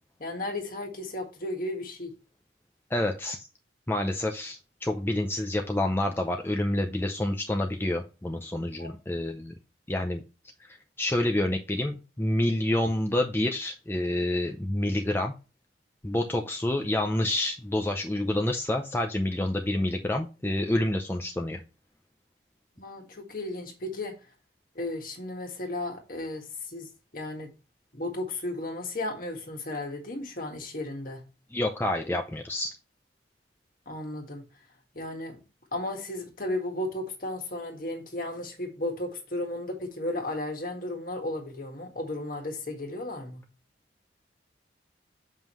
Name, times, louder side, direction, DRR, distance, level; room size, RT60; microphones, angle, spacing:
voice 1, 0.2-2.1 8.8-8.9 22.8-24.2 24.8-26.9 27.1-27.5 27.9-31.2 33.9-34.4 34.9-35.4 35.7-43.4, left 1 dB, 45° left, 1.7 m, -34 dB
voice 2, 2.9-3.5 3.9-9.5 9.9-10.2 10.6-15.3 16.0-21.6 31.5-32.8, left 1 dB, 10° left, 0.5 m, -28 dB
7.3 x 5.4 x 3.1 m
head